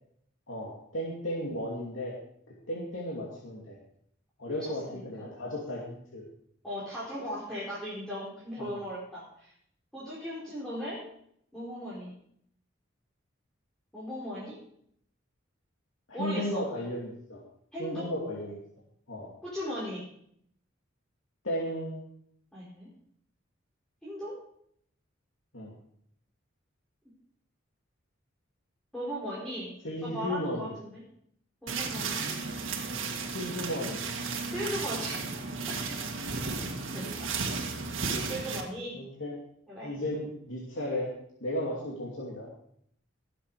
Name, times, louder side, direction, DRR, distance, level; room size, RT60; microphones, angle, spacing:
voice 1, 0.5-2.1 2.7-3.8 4.4-6.2 8.6-8.7 16.1-17.4 17.8-18.6 19.1-19.3 21.4-22.0 25.5-25.7 29.8-30.8 33.2-34.1 38.9-39.4 39.8-41.1 41.4-42.5, left 1 dB, 80° left, -4 dB, 2.7 m, -34 dB
voice 2, 4.5-5.3 6.6-9.5 9.9-11.0 11.5-12.1 13.9-14.6 16.1-16.6 17.7-18.1 19.4-20.0 22.5-22.9 24.0-24.3 28.9-29.7 30.0-31.0 31.6-32.3 34.5-35.3 36.9-37.5 38.3-39.0 39.7-40.0, equal, 5° left, -9 dB, 4.7 m, -37 dB
sound 1, 31.7-38.6, right 4 dB, 80° right, 1.9 m, -34 dB
18.0 x 8.0 x 4.9 m, 0.68 s
head